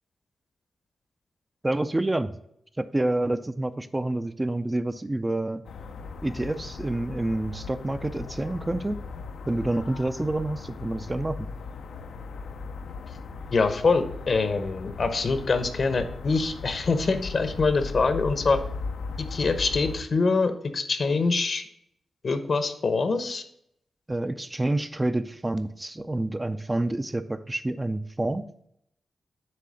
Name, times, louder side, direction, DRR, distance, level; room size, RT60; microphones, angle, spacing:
voice 1, 1.6-2.3 2.8-5.6 6.2-9.0 9.5-11.5 24.1-28.4, right 2 dB, 20° right, 10 dB, 0.4 m, -28 dB
sound 1, 5.6-20.0, left 4 dB, 85° left, 0.6 m, -38 dB
voice 2, 13.5-18.6 19.2-21.6 22.2-23.4, left 4 dB, 55° left, 9 dB, 0.8 m, -24 dB
7.7 x 3.3 x 6.3 m, 0.73 s
cardioid pair, 85°, 0 cm